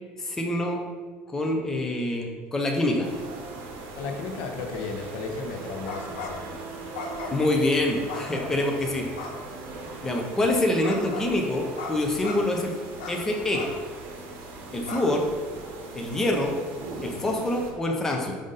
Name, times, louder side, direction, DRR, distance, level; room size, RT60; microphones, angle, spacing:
voice 1, 0.2-0.8 1.3-3.1 7.3-9.1 10.0-12.7 13.1-13.6 14.7-15.3 15.9-16.6 17.0-18.4, left 1 dB, 10° left, 1 dB, 0.6 m, -26 dB
sound 1, 3.0-17.7, right 3 dB, 60° right, 1.2 m, -40 dB
voice 2, 4.0-6.5, left 4 dB, 70° left, 4 dB, 0.9 m, -34 dB
sound 2, 5.8-6.5 6.9-7.5 8.1-8.7 9.2-9.3 10.8-11.3 11.8-11.9 12.2-12.4 13.0-13.1 13.5-13.7 14.2-14.3 14.8-15.0, left 4 dB, 90° left, 1.2 m, -36 dB
5.2 x 5.1 x 4.0 m, 1.5 s
cardioid pair, 150°, 4 cm